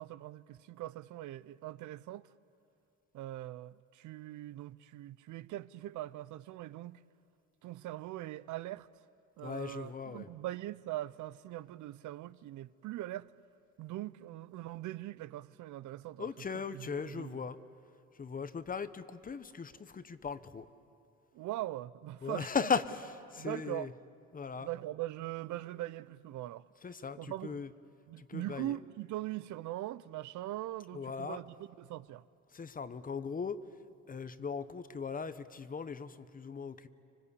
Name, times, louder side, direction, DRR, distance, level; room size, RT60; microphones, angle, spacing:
voice 1, 0.0-2.3 3.1-7.0 7.6-8.9 9.4-13.3 13.8-16.5 16.7-17.4 21.3-22.5 23.4-23.9 24.6-26.6 27.2-27.6 28.1-32.2, right 15 dB, 70° right, 0.6 m, -41 dB
voice 2, 9.4-10.3 16.2-17.6 18.2-20.7 22.2-23.9 24.3-24.7 26.8-27.7 28.2-28.8 30.9-31.4 32.5-33.6 34.1-36.9, left 5 dB, 25° left, 0.9 m, -38 dB
26.0 x 23.5 x 8.4 m
cardioid pair, 110°, 31 cm